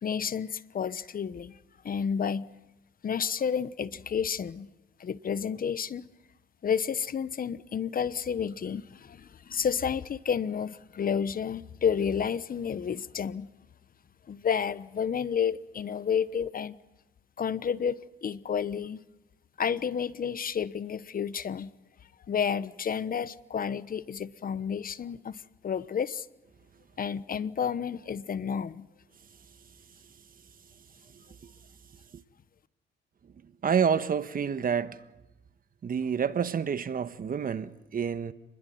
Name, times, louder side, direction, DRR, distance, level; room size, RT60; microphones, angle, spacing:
voice 1, 0.0-1.6 1.8-2.5 3.0-4.7 5.0-6.1 6.6-13.5 14.3-16.8 17.4-19.0 19.6-21.7 22.3-26.3 27.0-28.9, left 7 dB, 45° left, 1.1 m, -31 dB
voice 2, 33.6-35.0 35.8-38.3, right 7 dB, 45° right, 1.4 m, -28 dB
29.0 x 21.5 x 9.4 m
cardioid pair, 90°, 20 cm